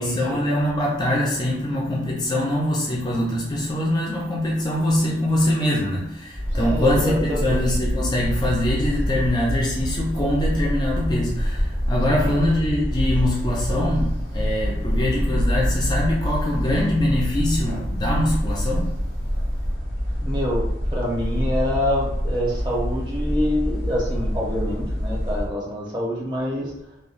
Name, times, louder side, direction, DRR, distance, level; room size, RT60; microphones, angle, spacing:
voice 1, 0.0-18.9, left 1 dB, 25° left, -4 dB, 0.4 m, -23 dB
sound 1, 6.3-25.5, equal, 55° right, 1.3 m, -26 dB
voice 2, 6.5-7.7 12.1-12.3 20.2-20.6 20.9-26.7, equal, 25° right, -5 dB, 0.9 m, -26 dB
3.0 x 2.1 x 2.5 m, 0.82 s
head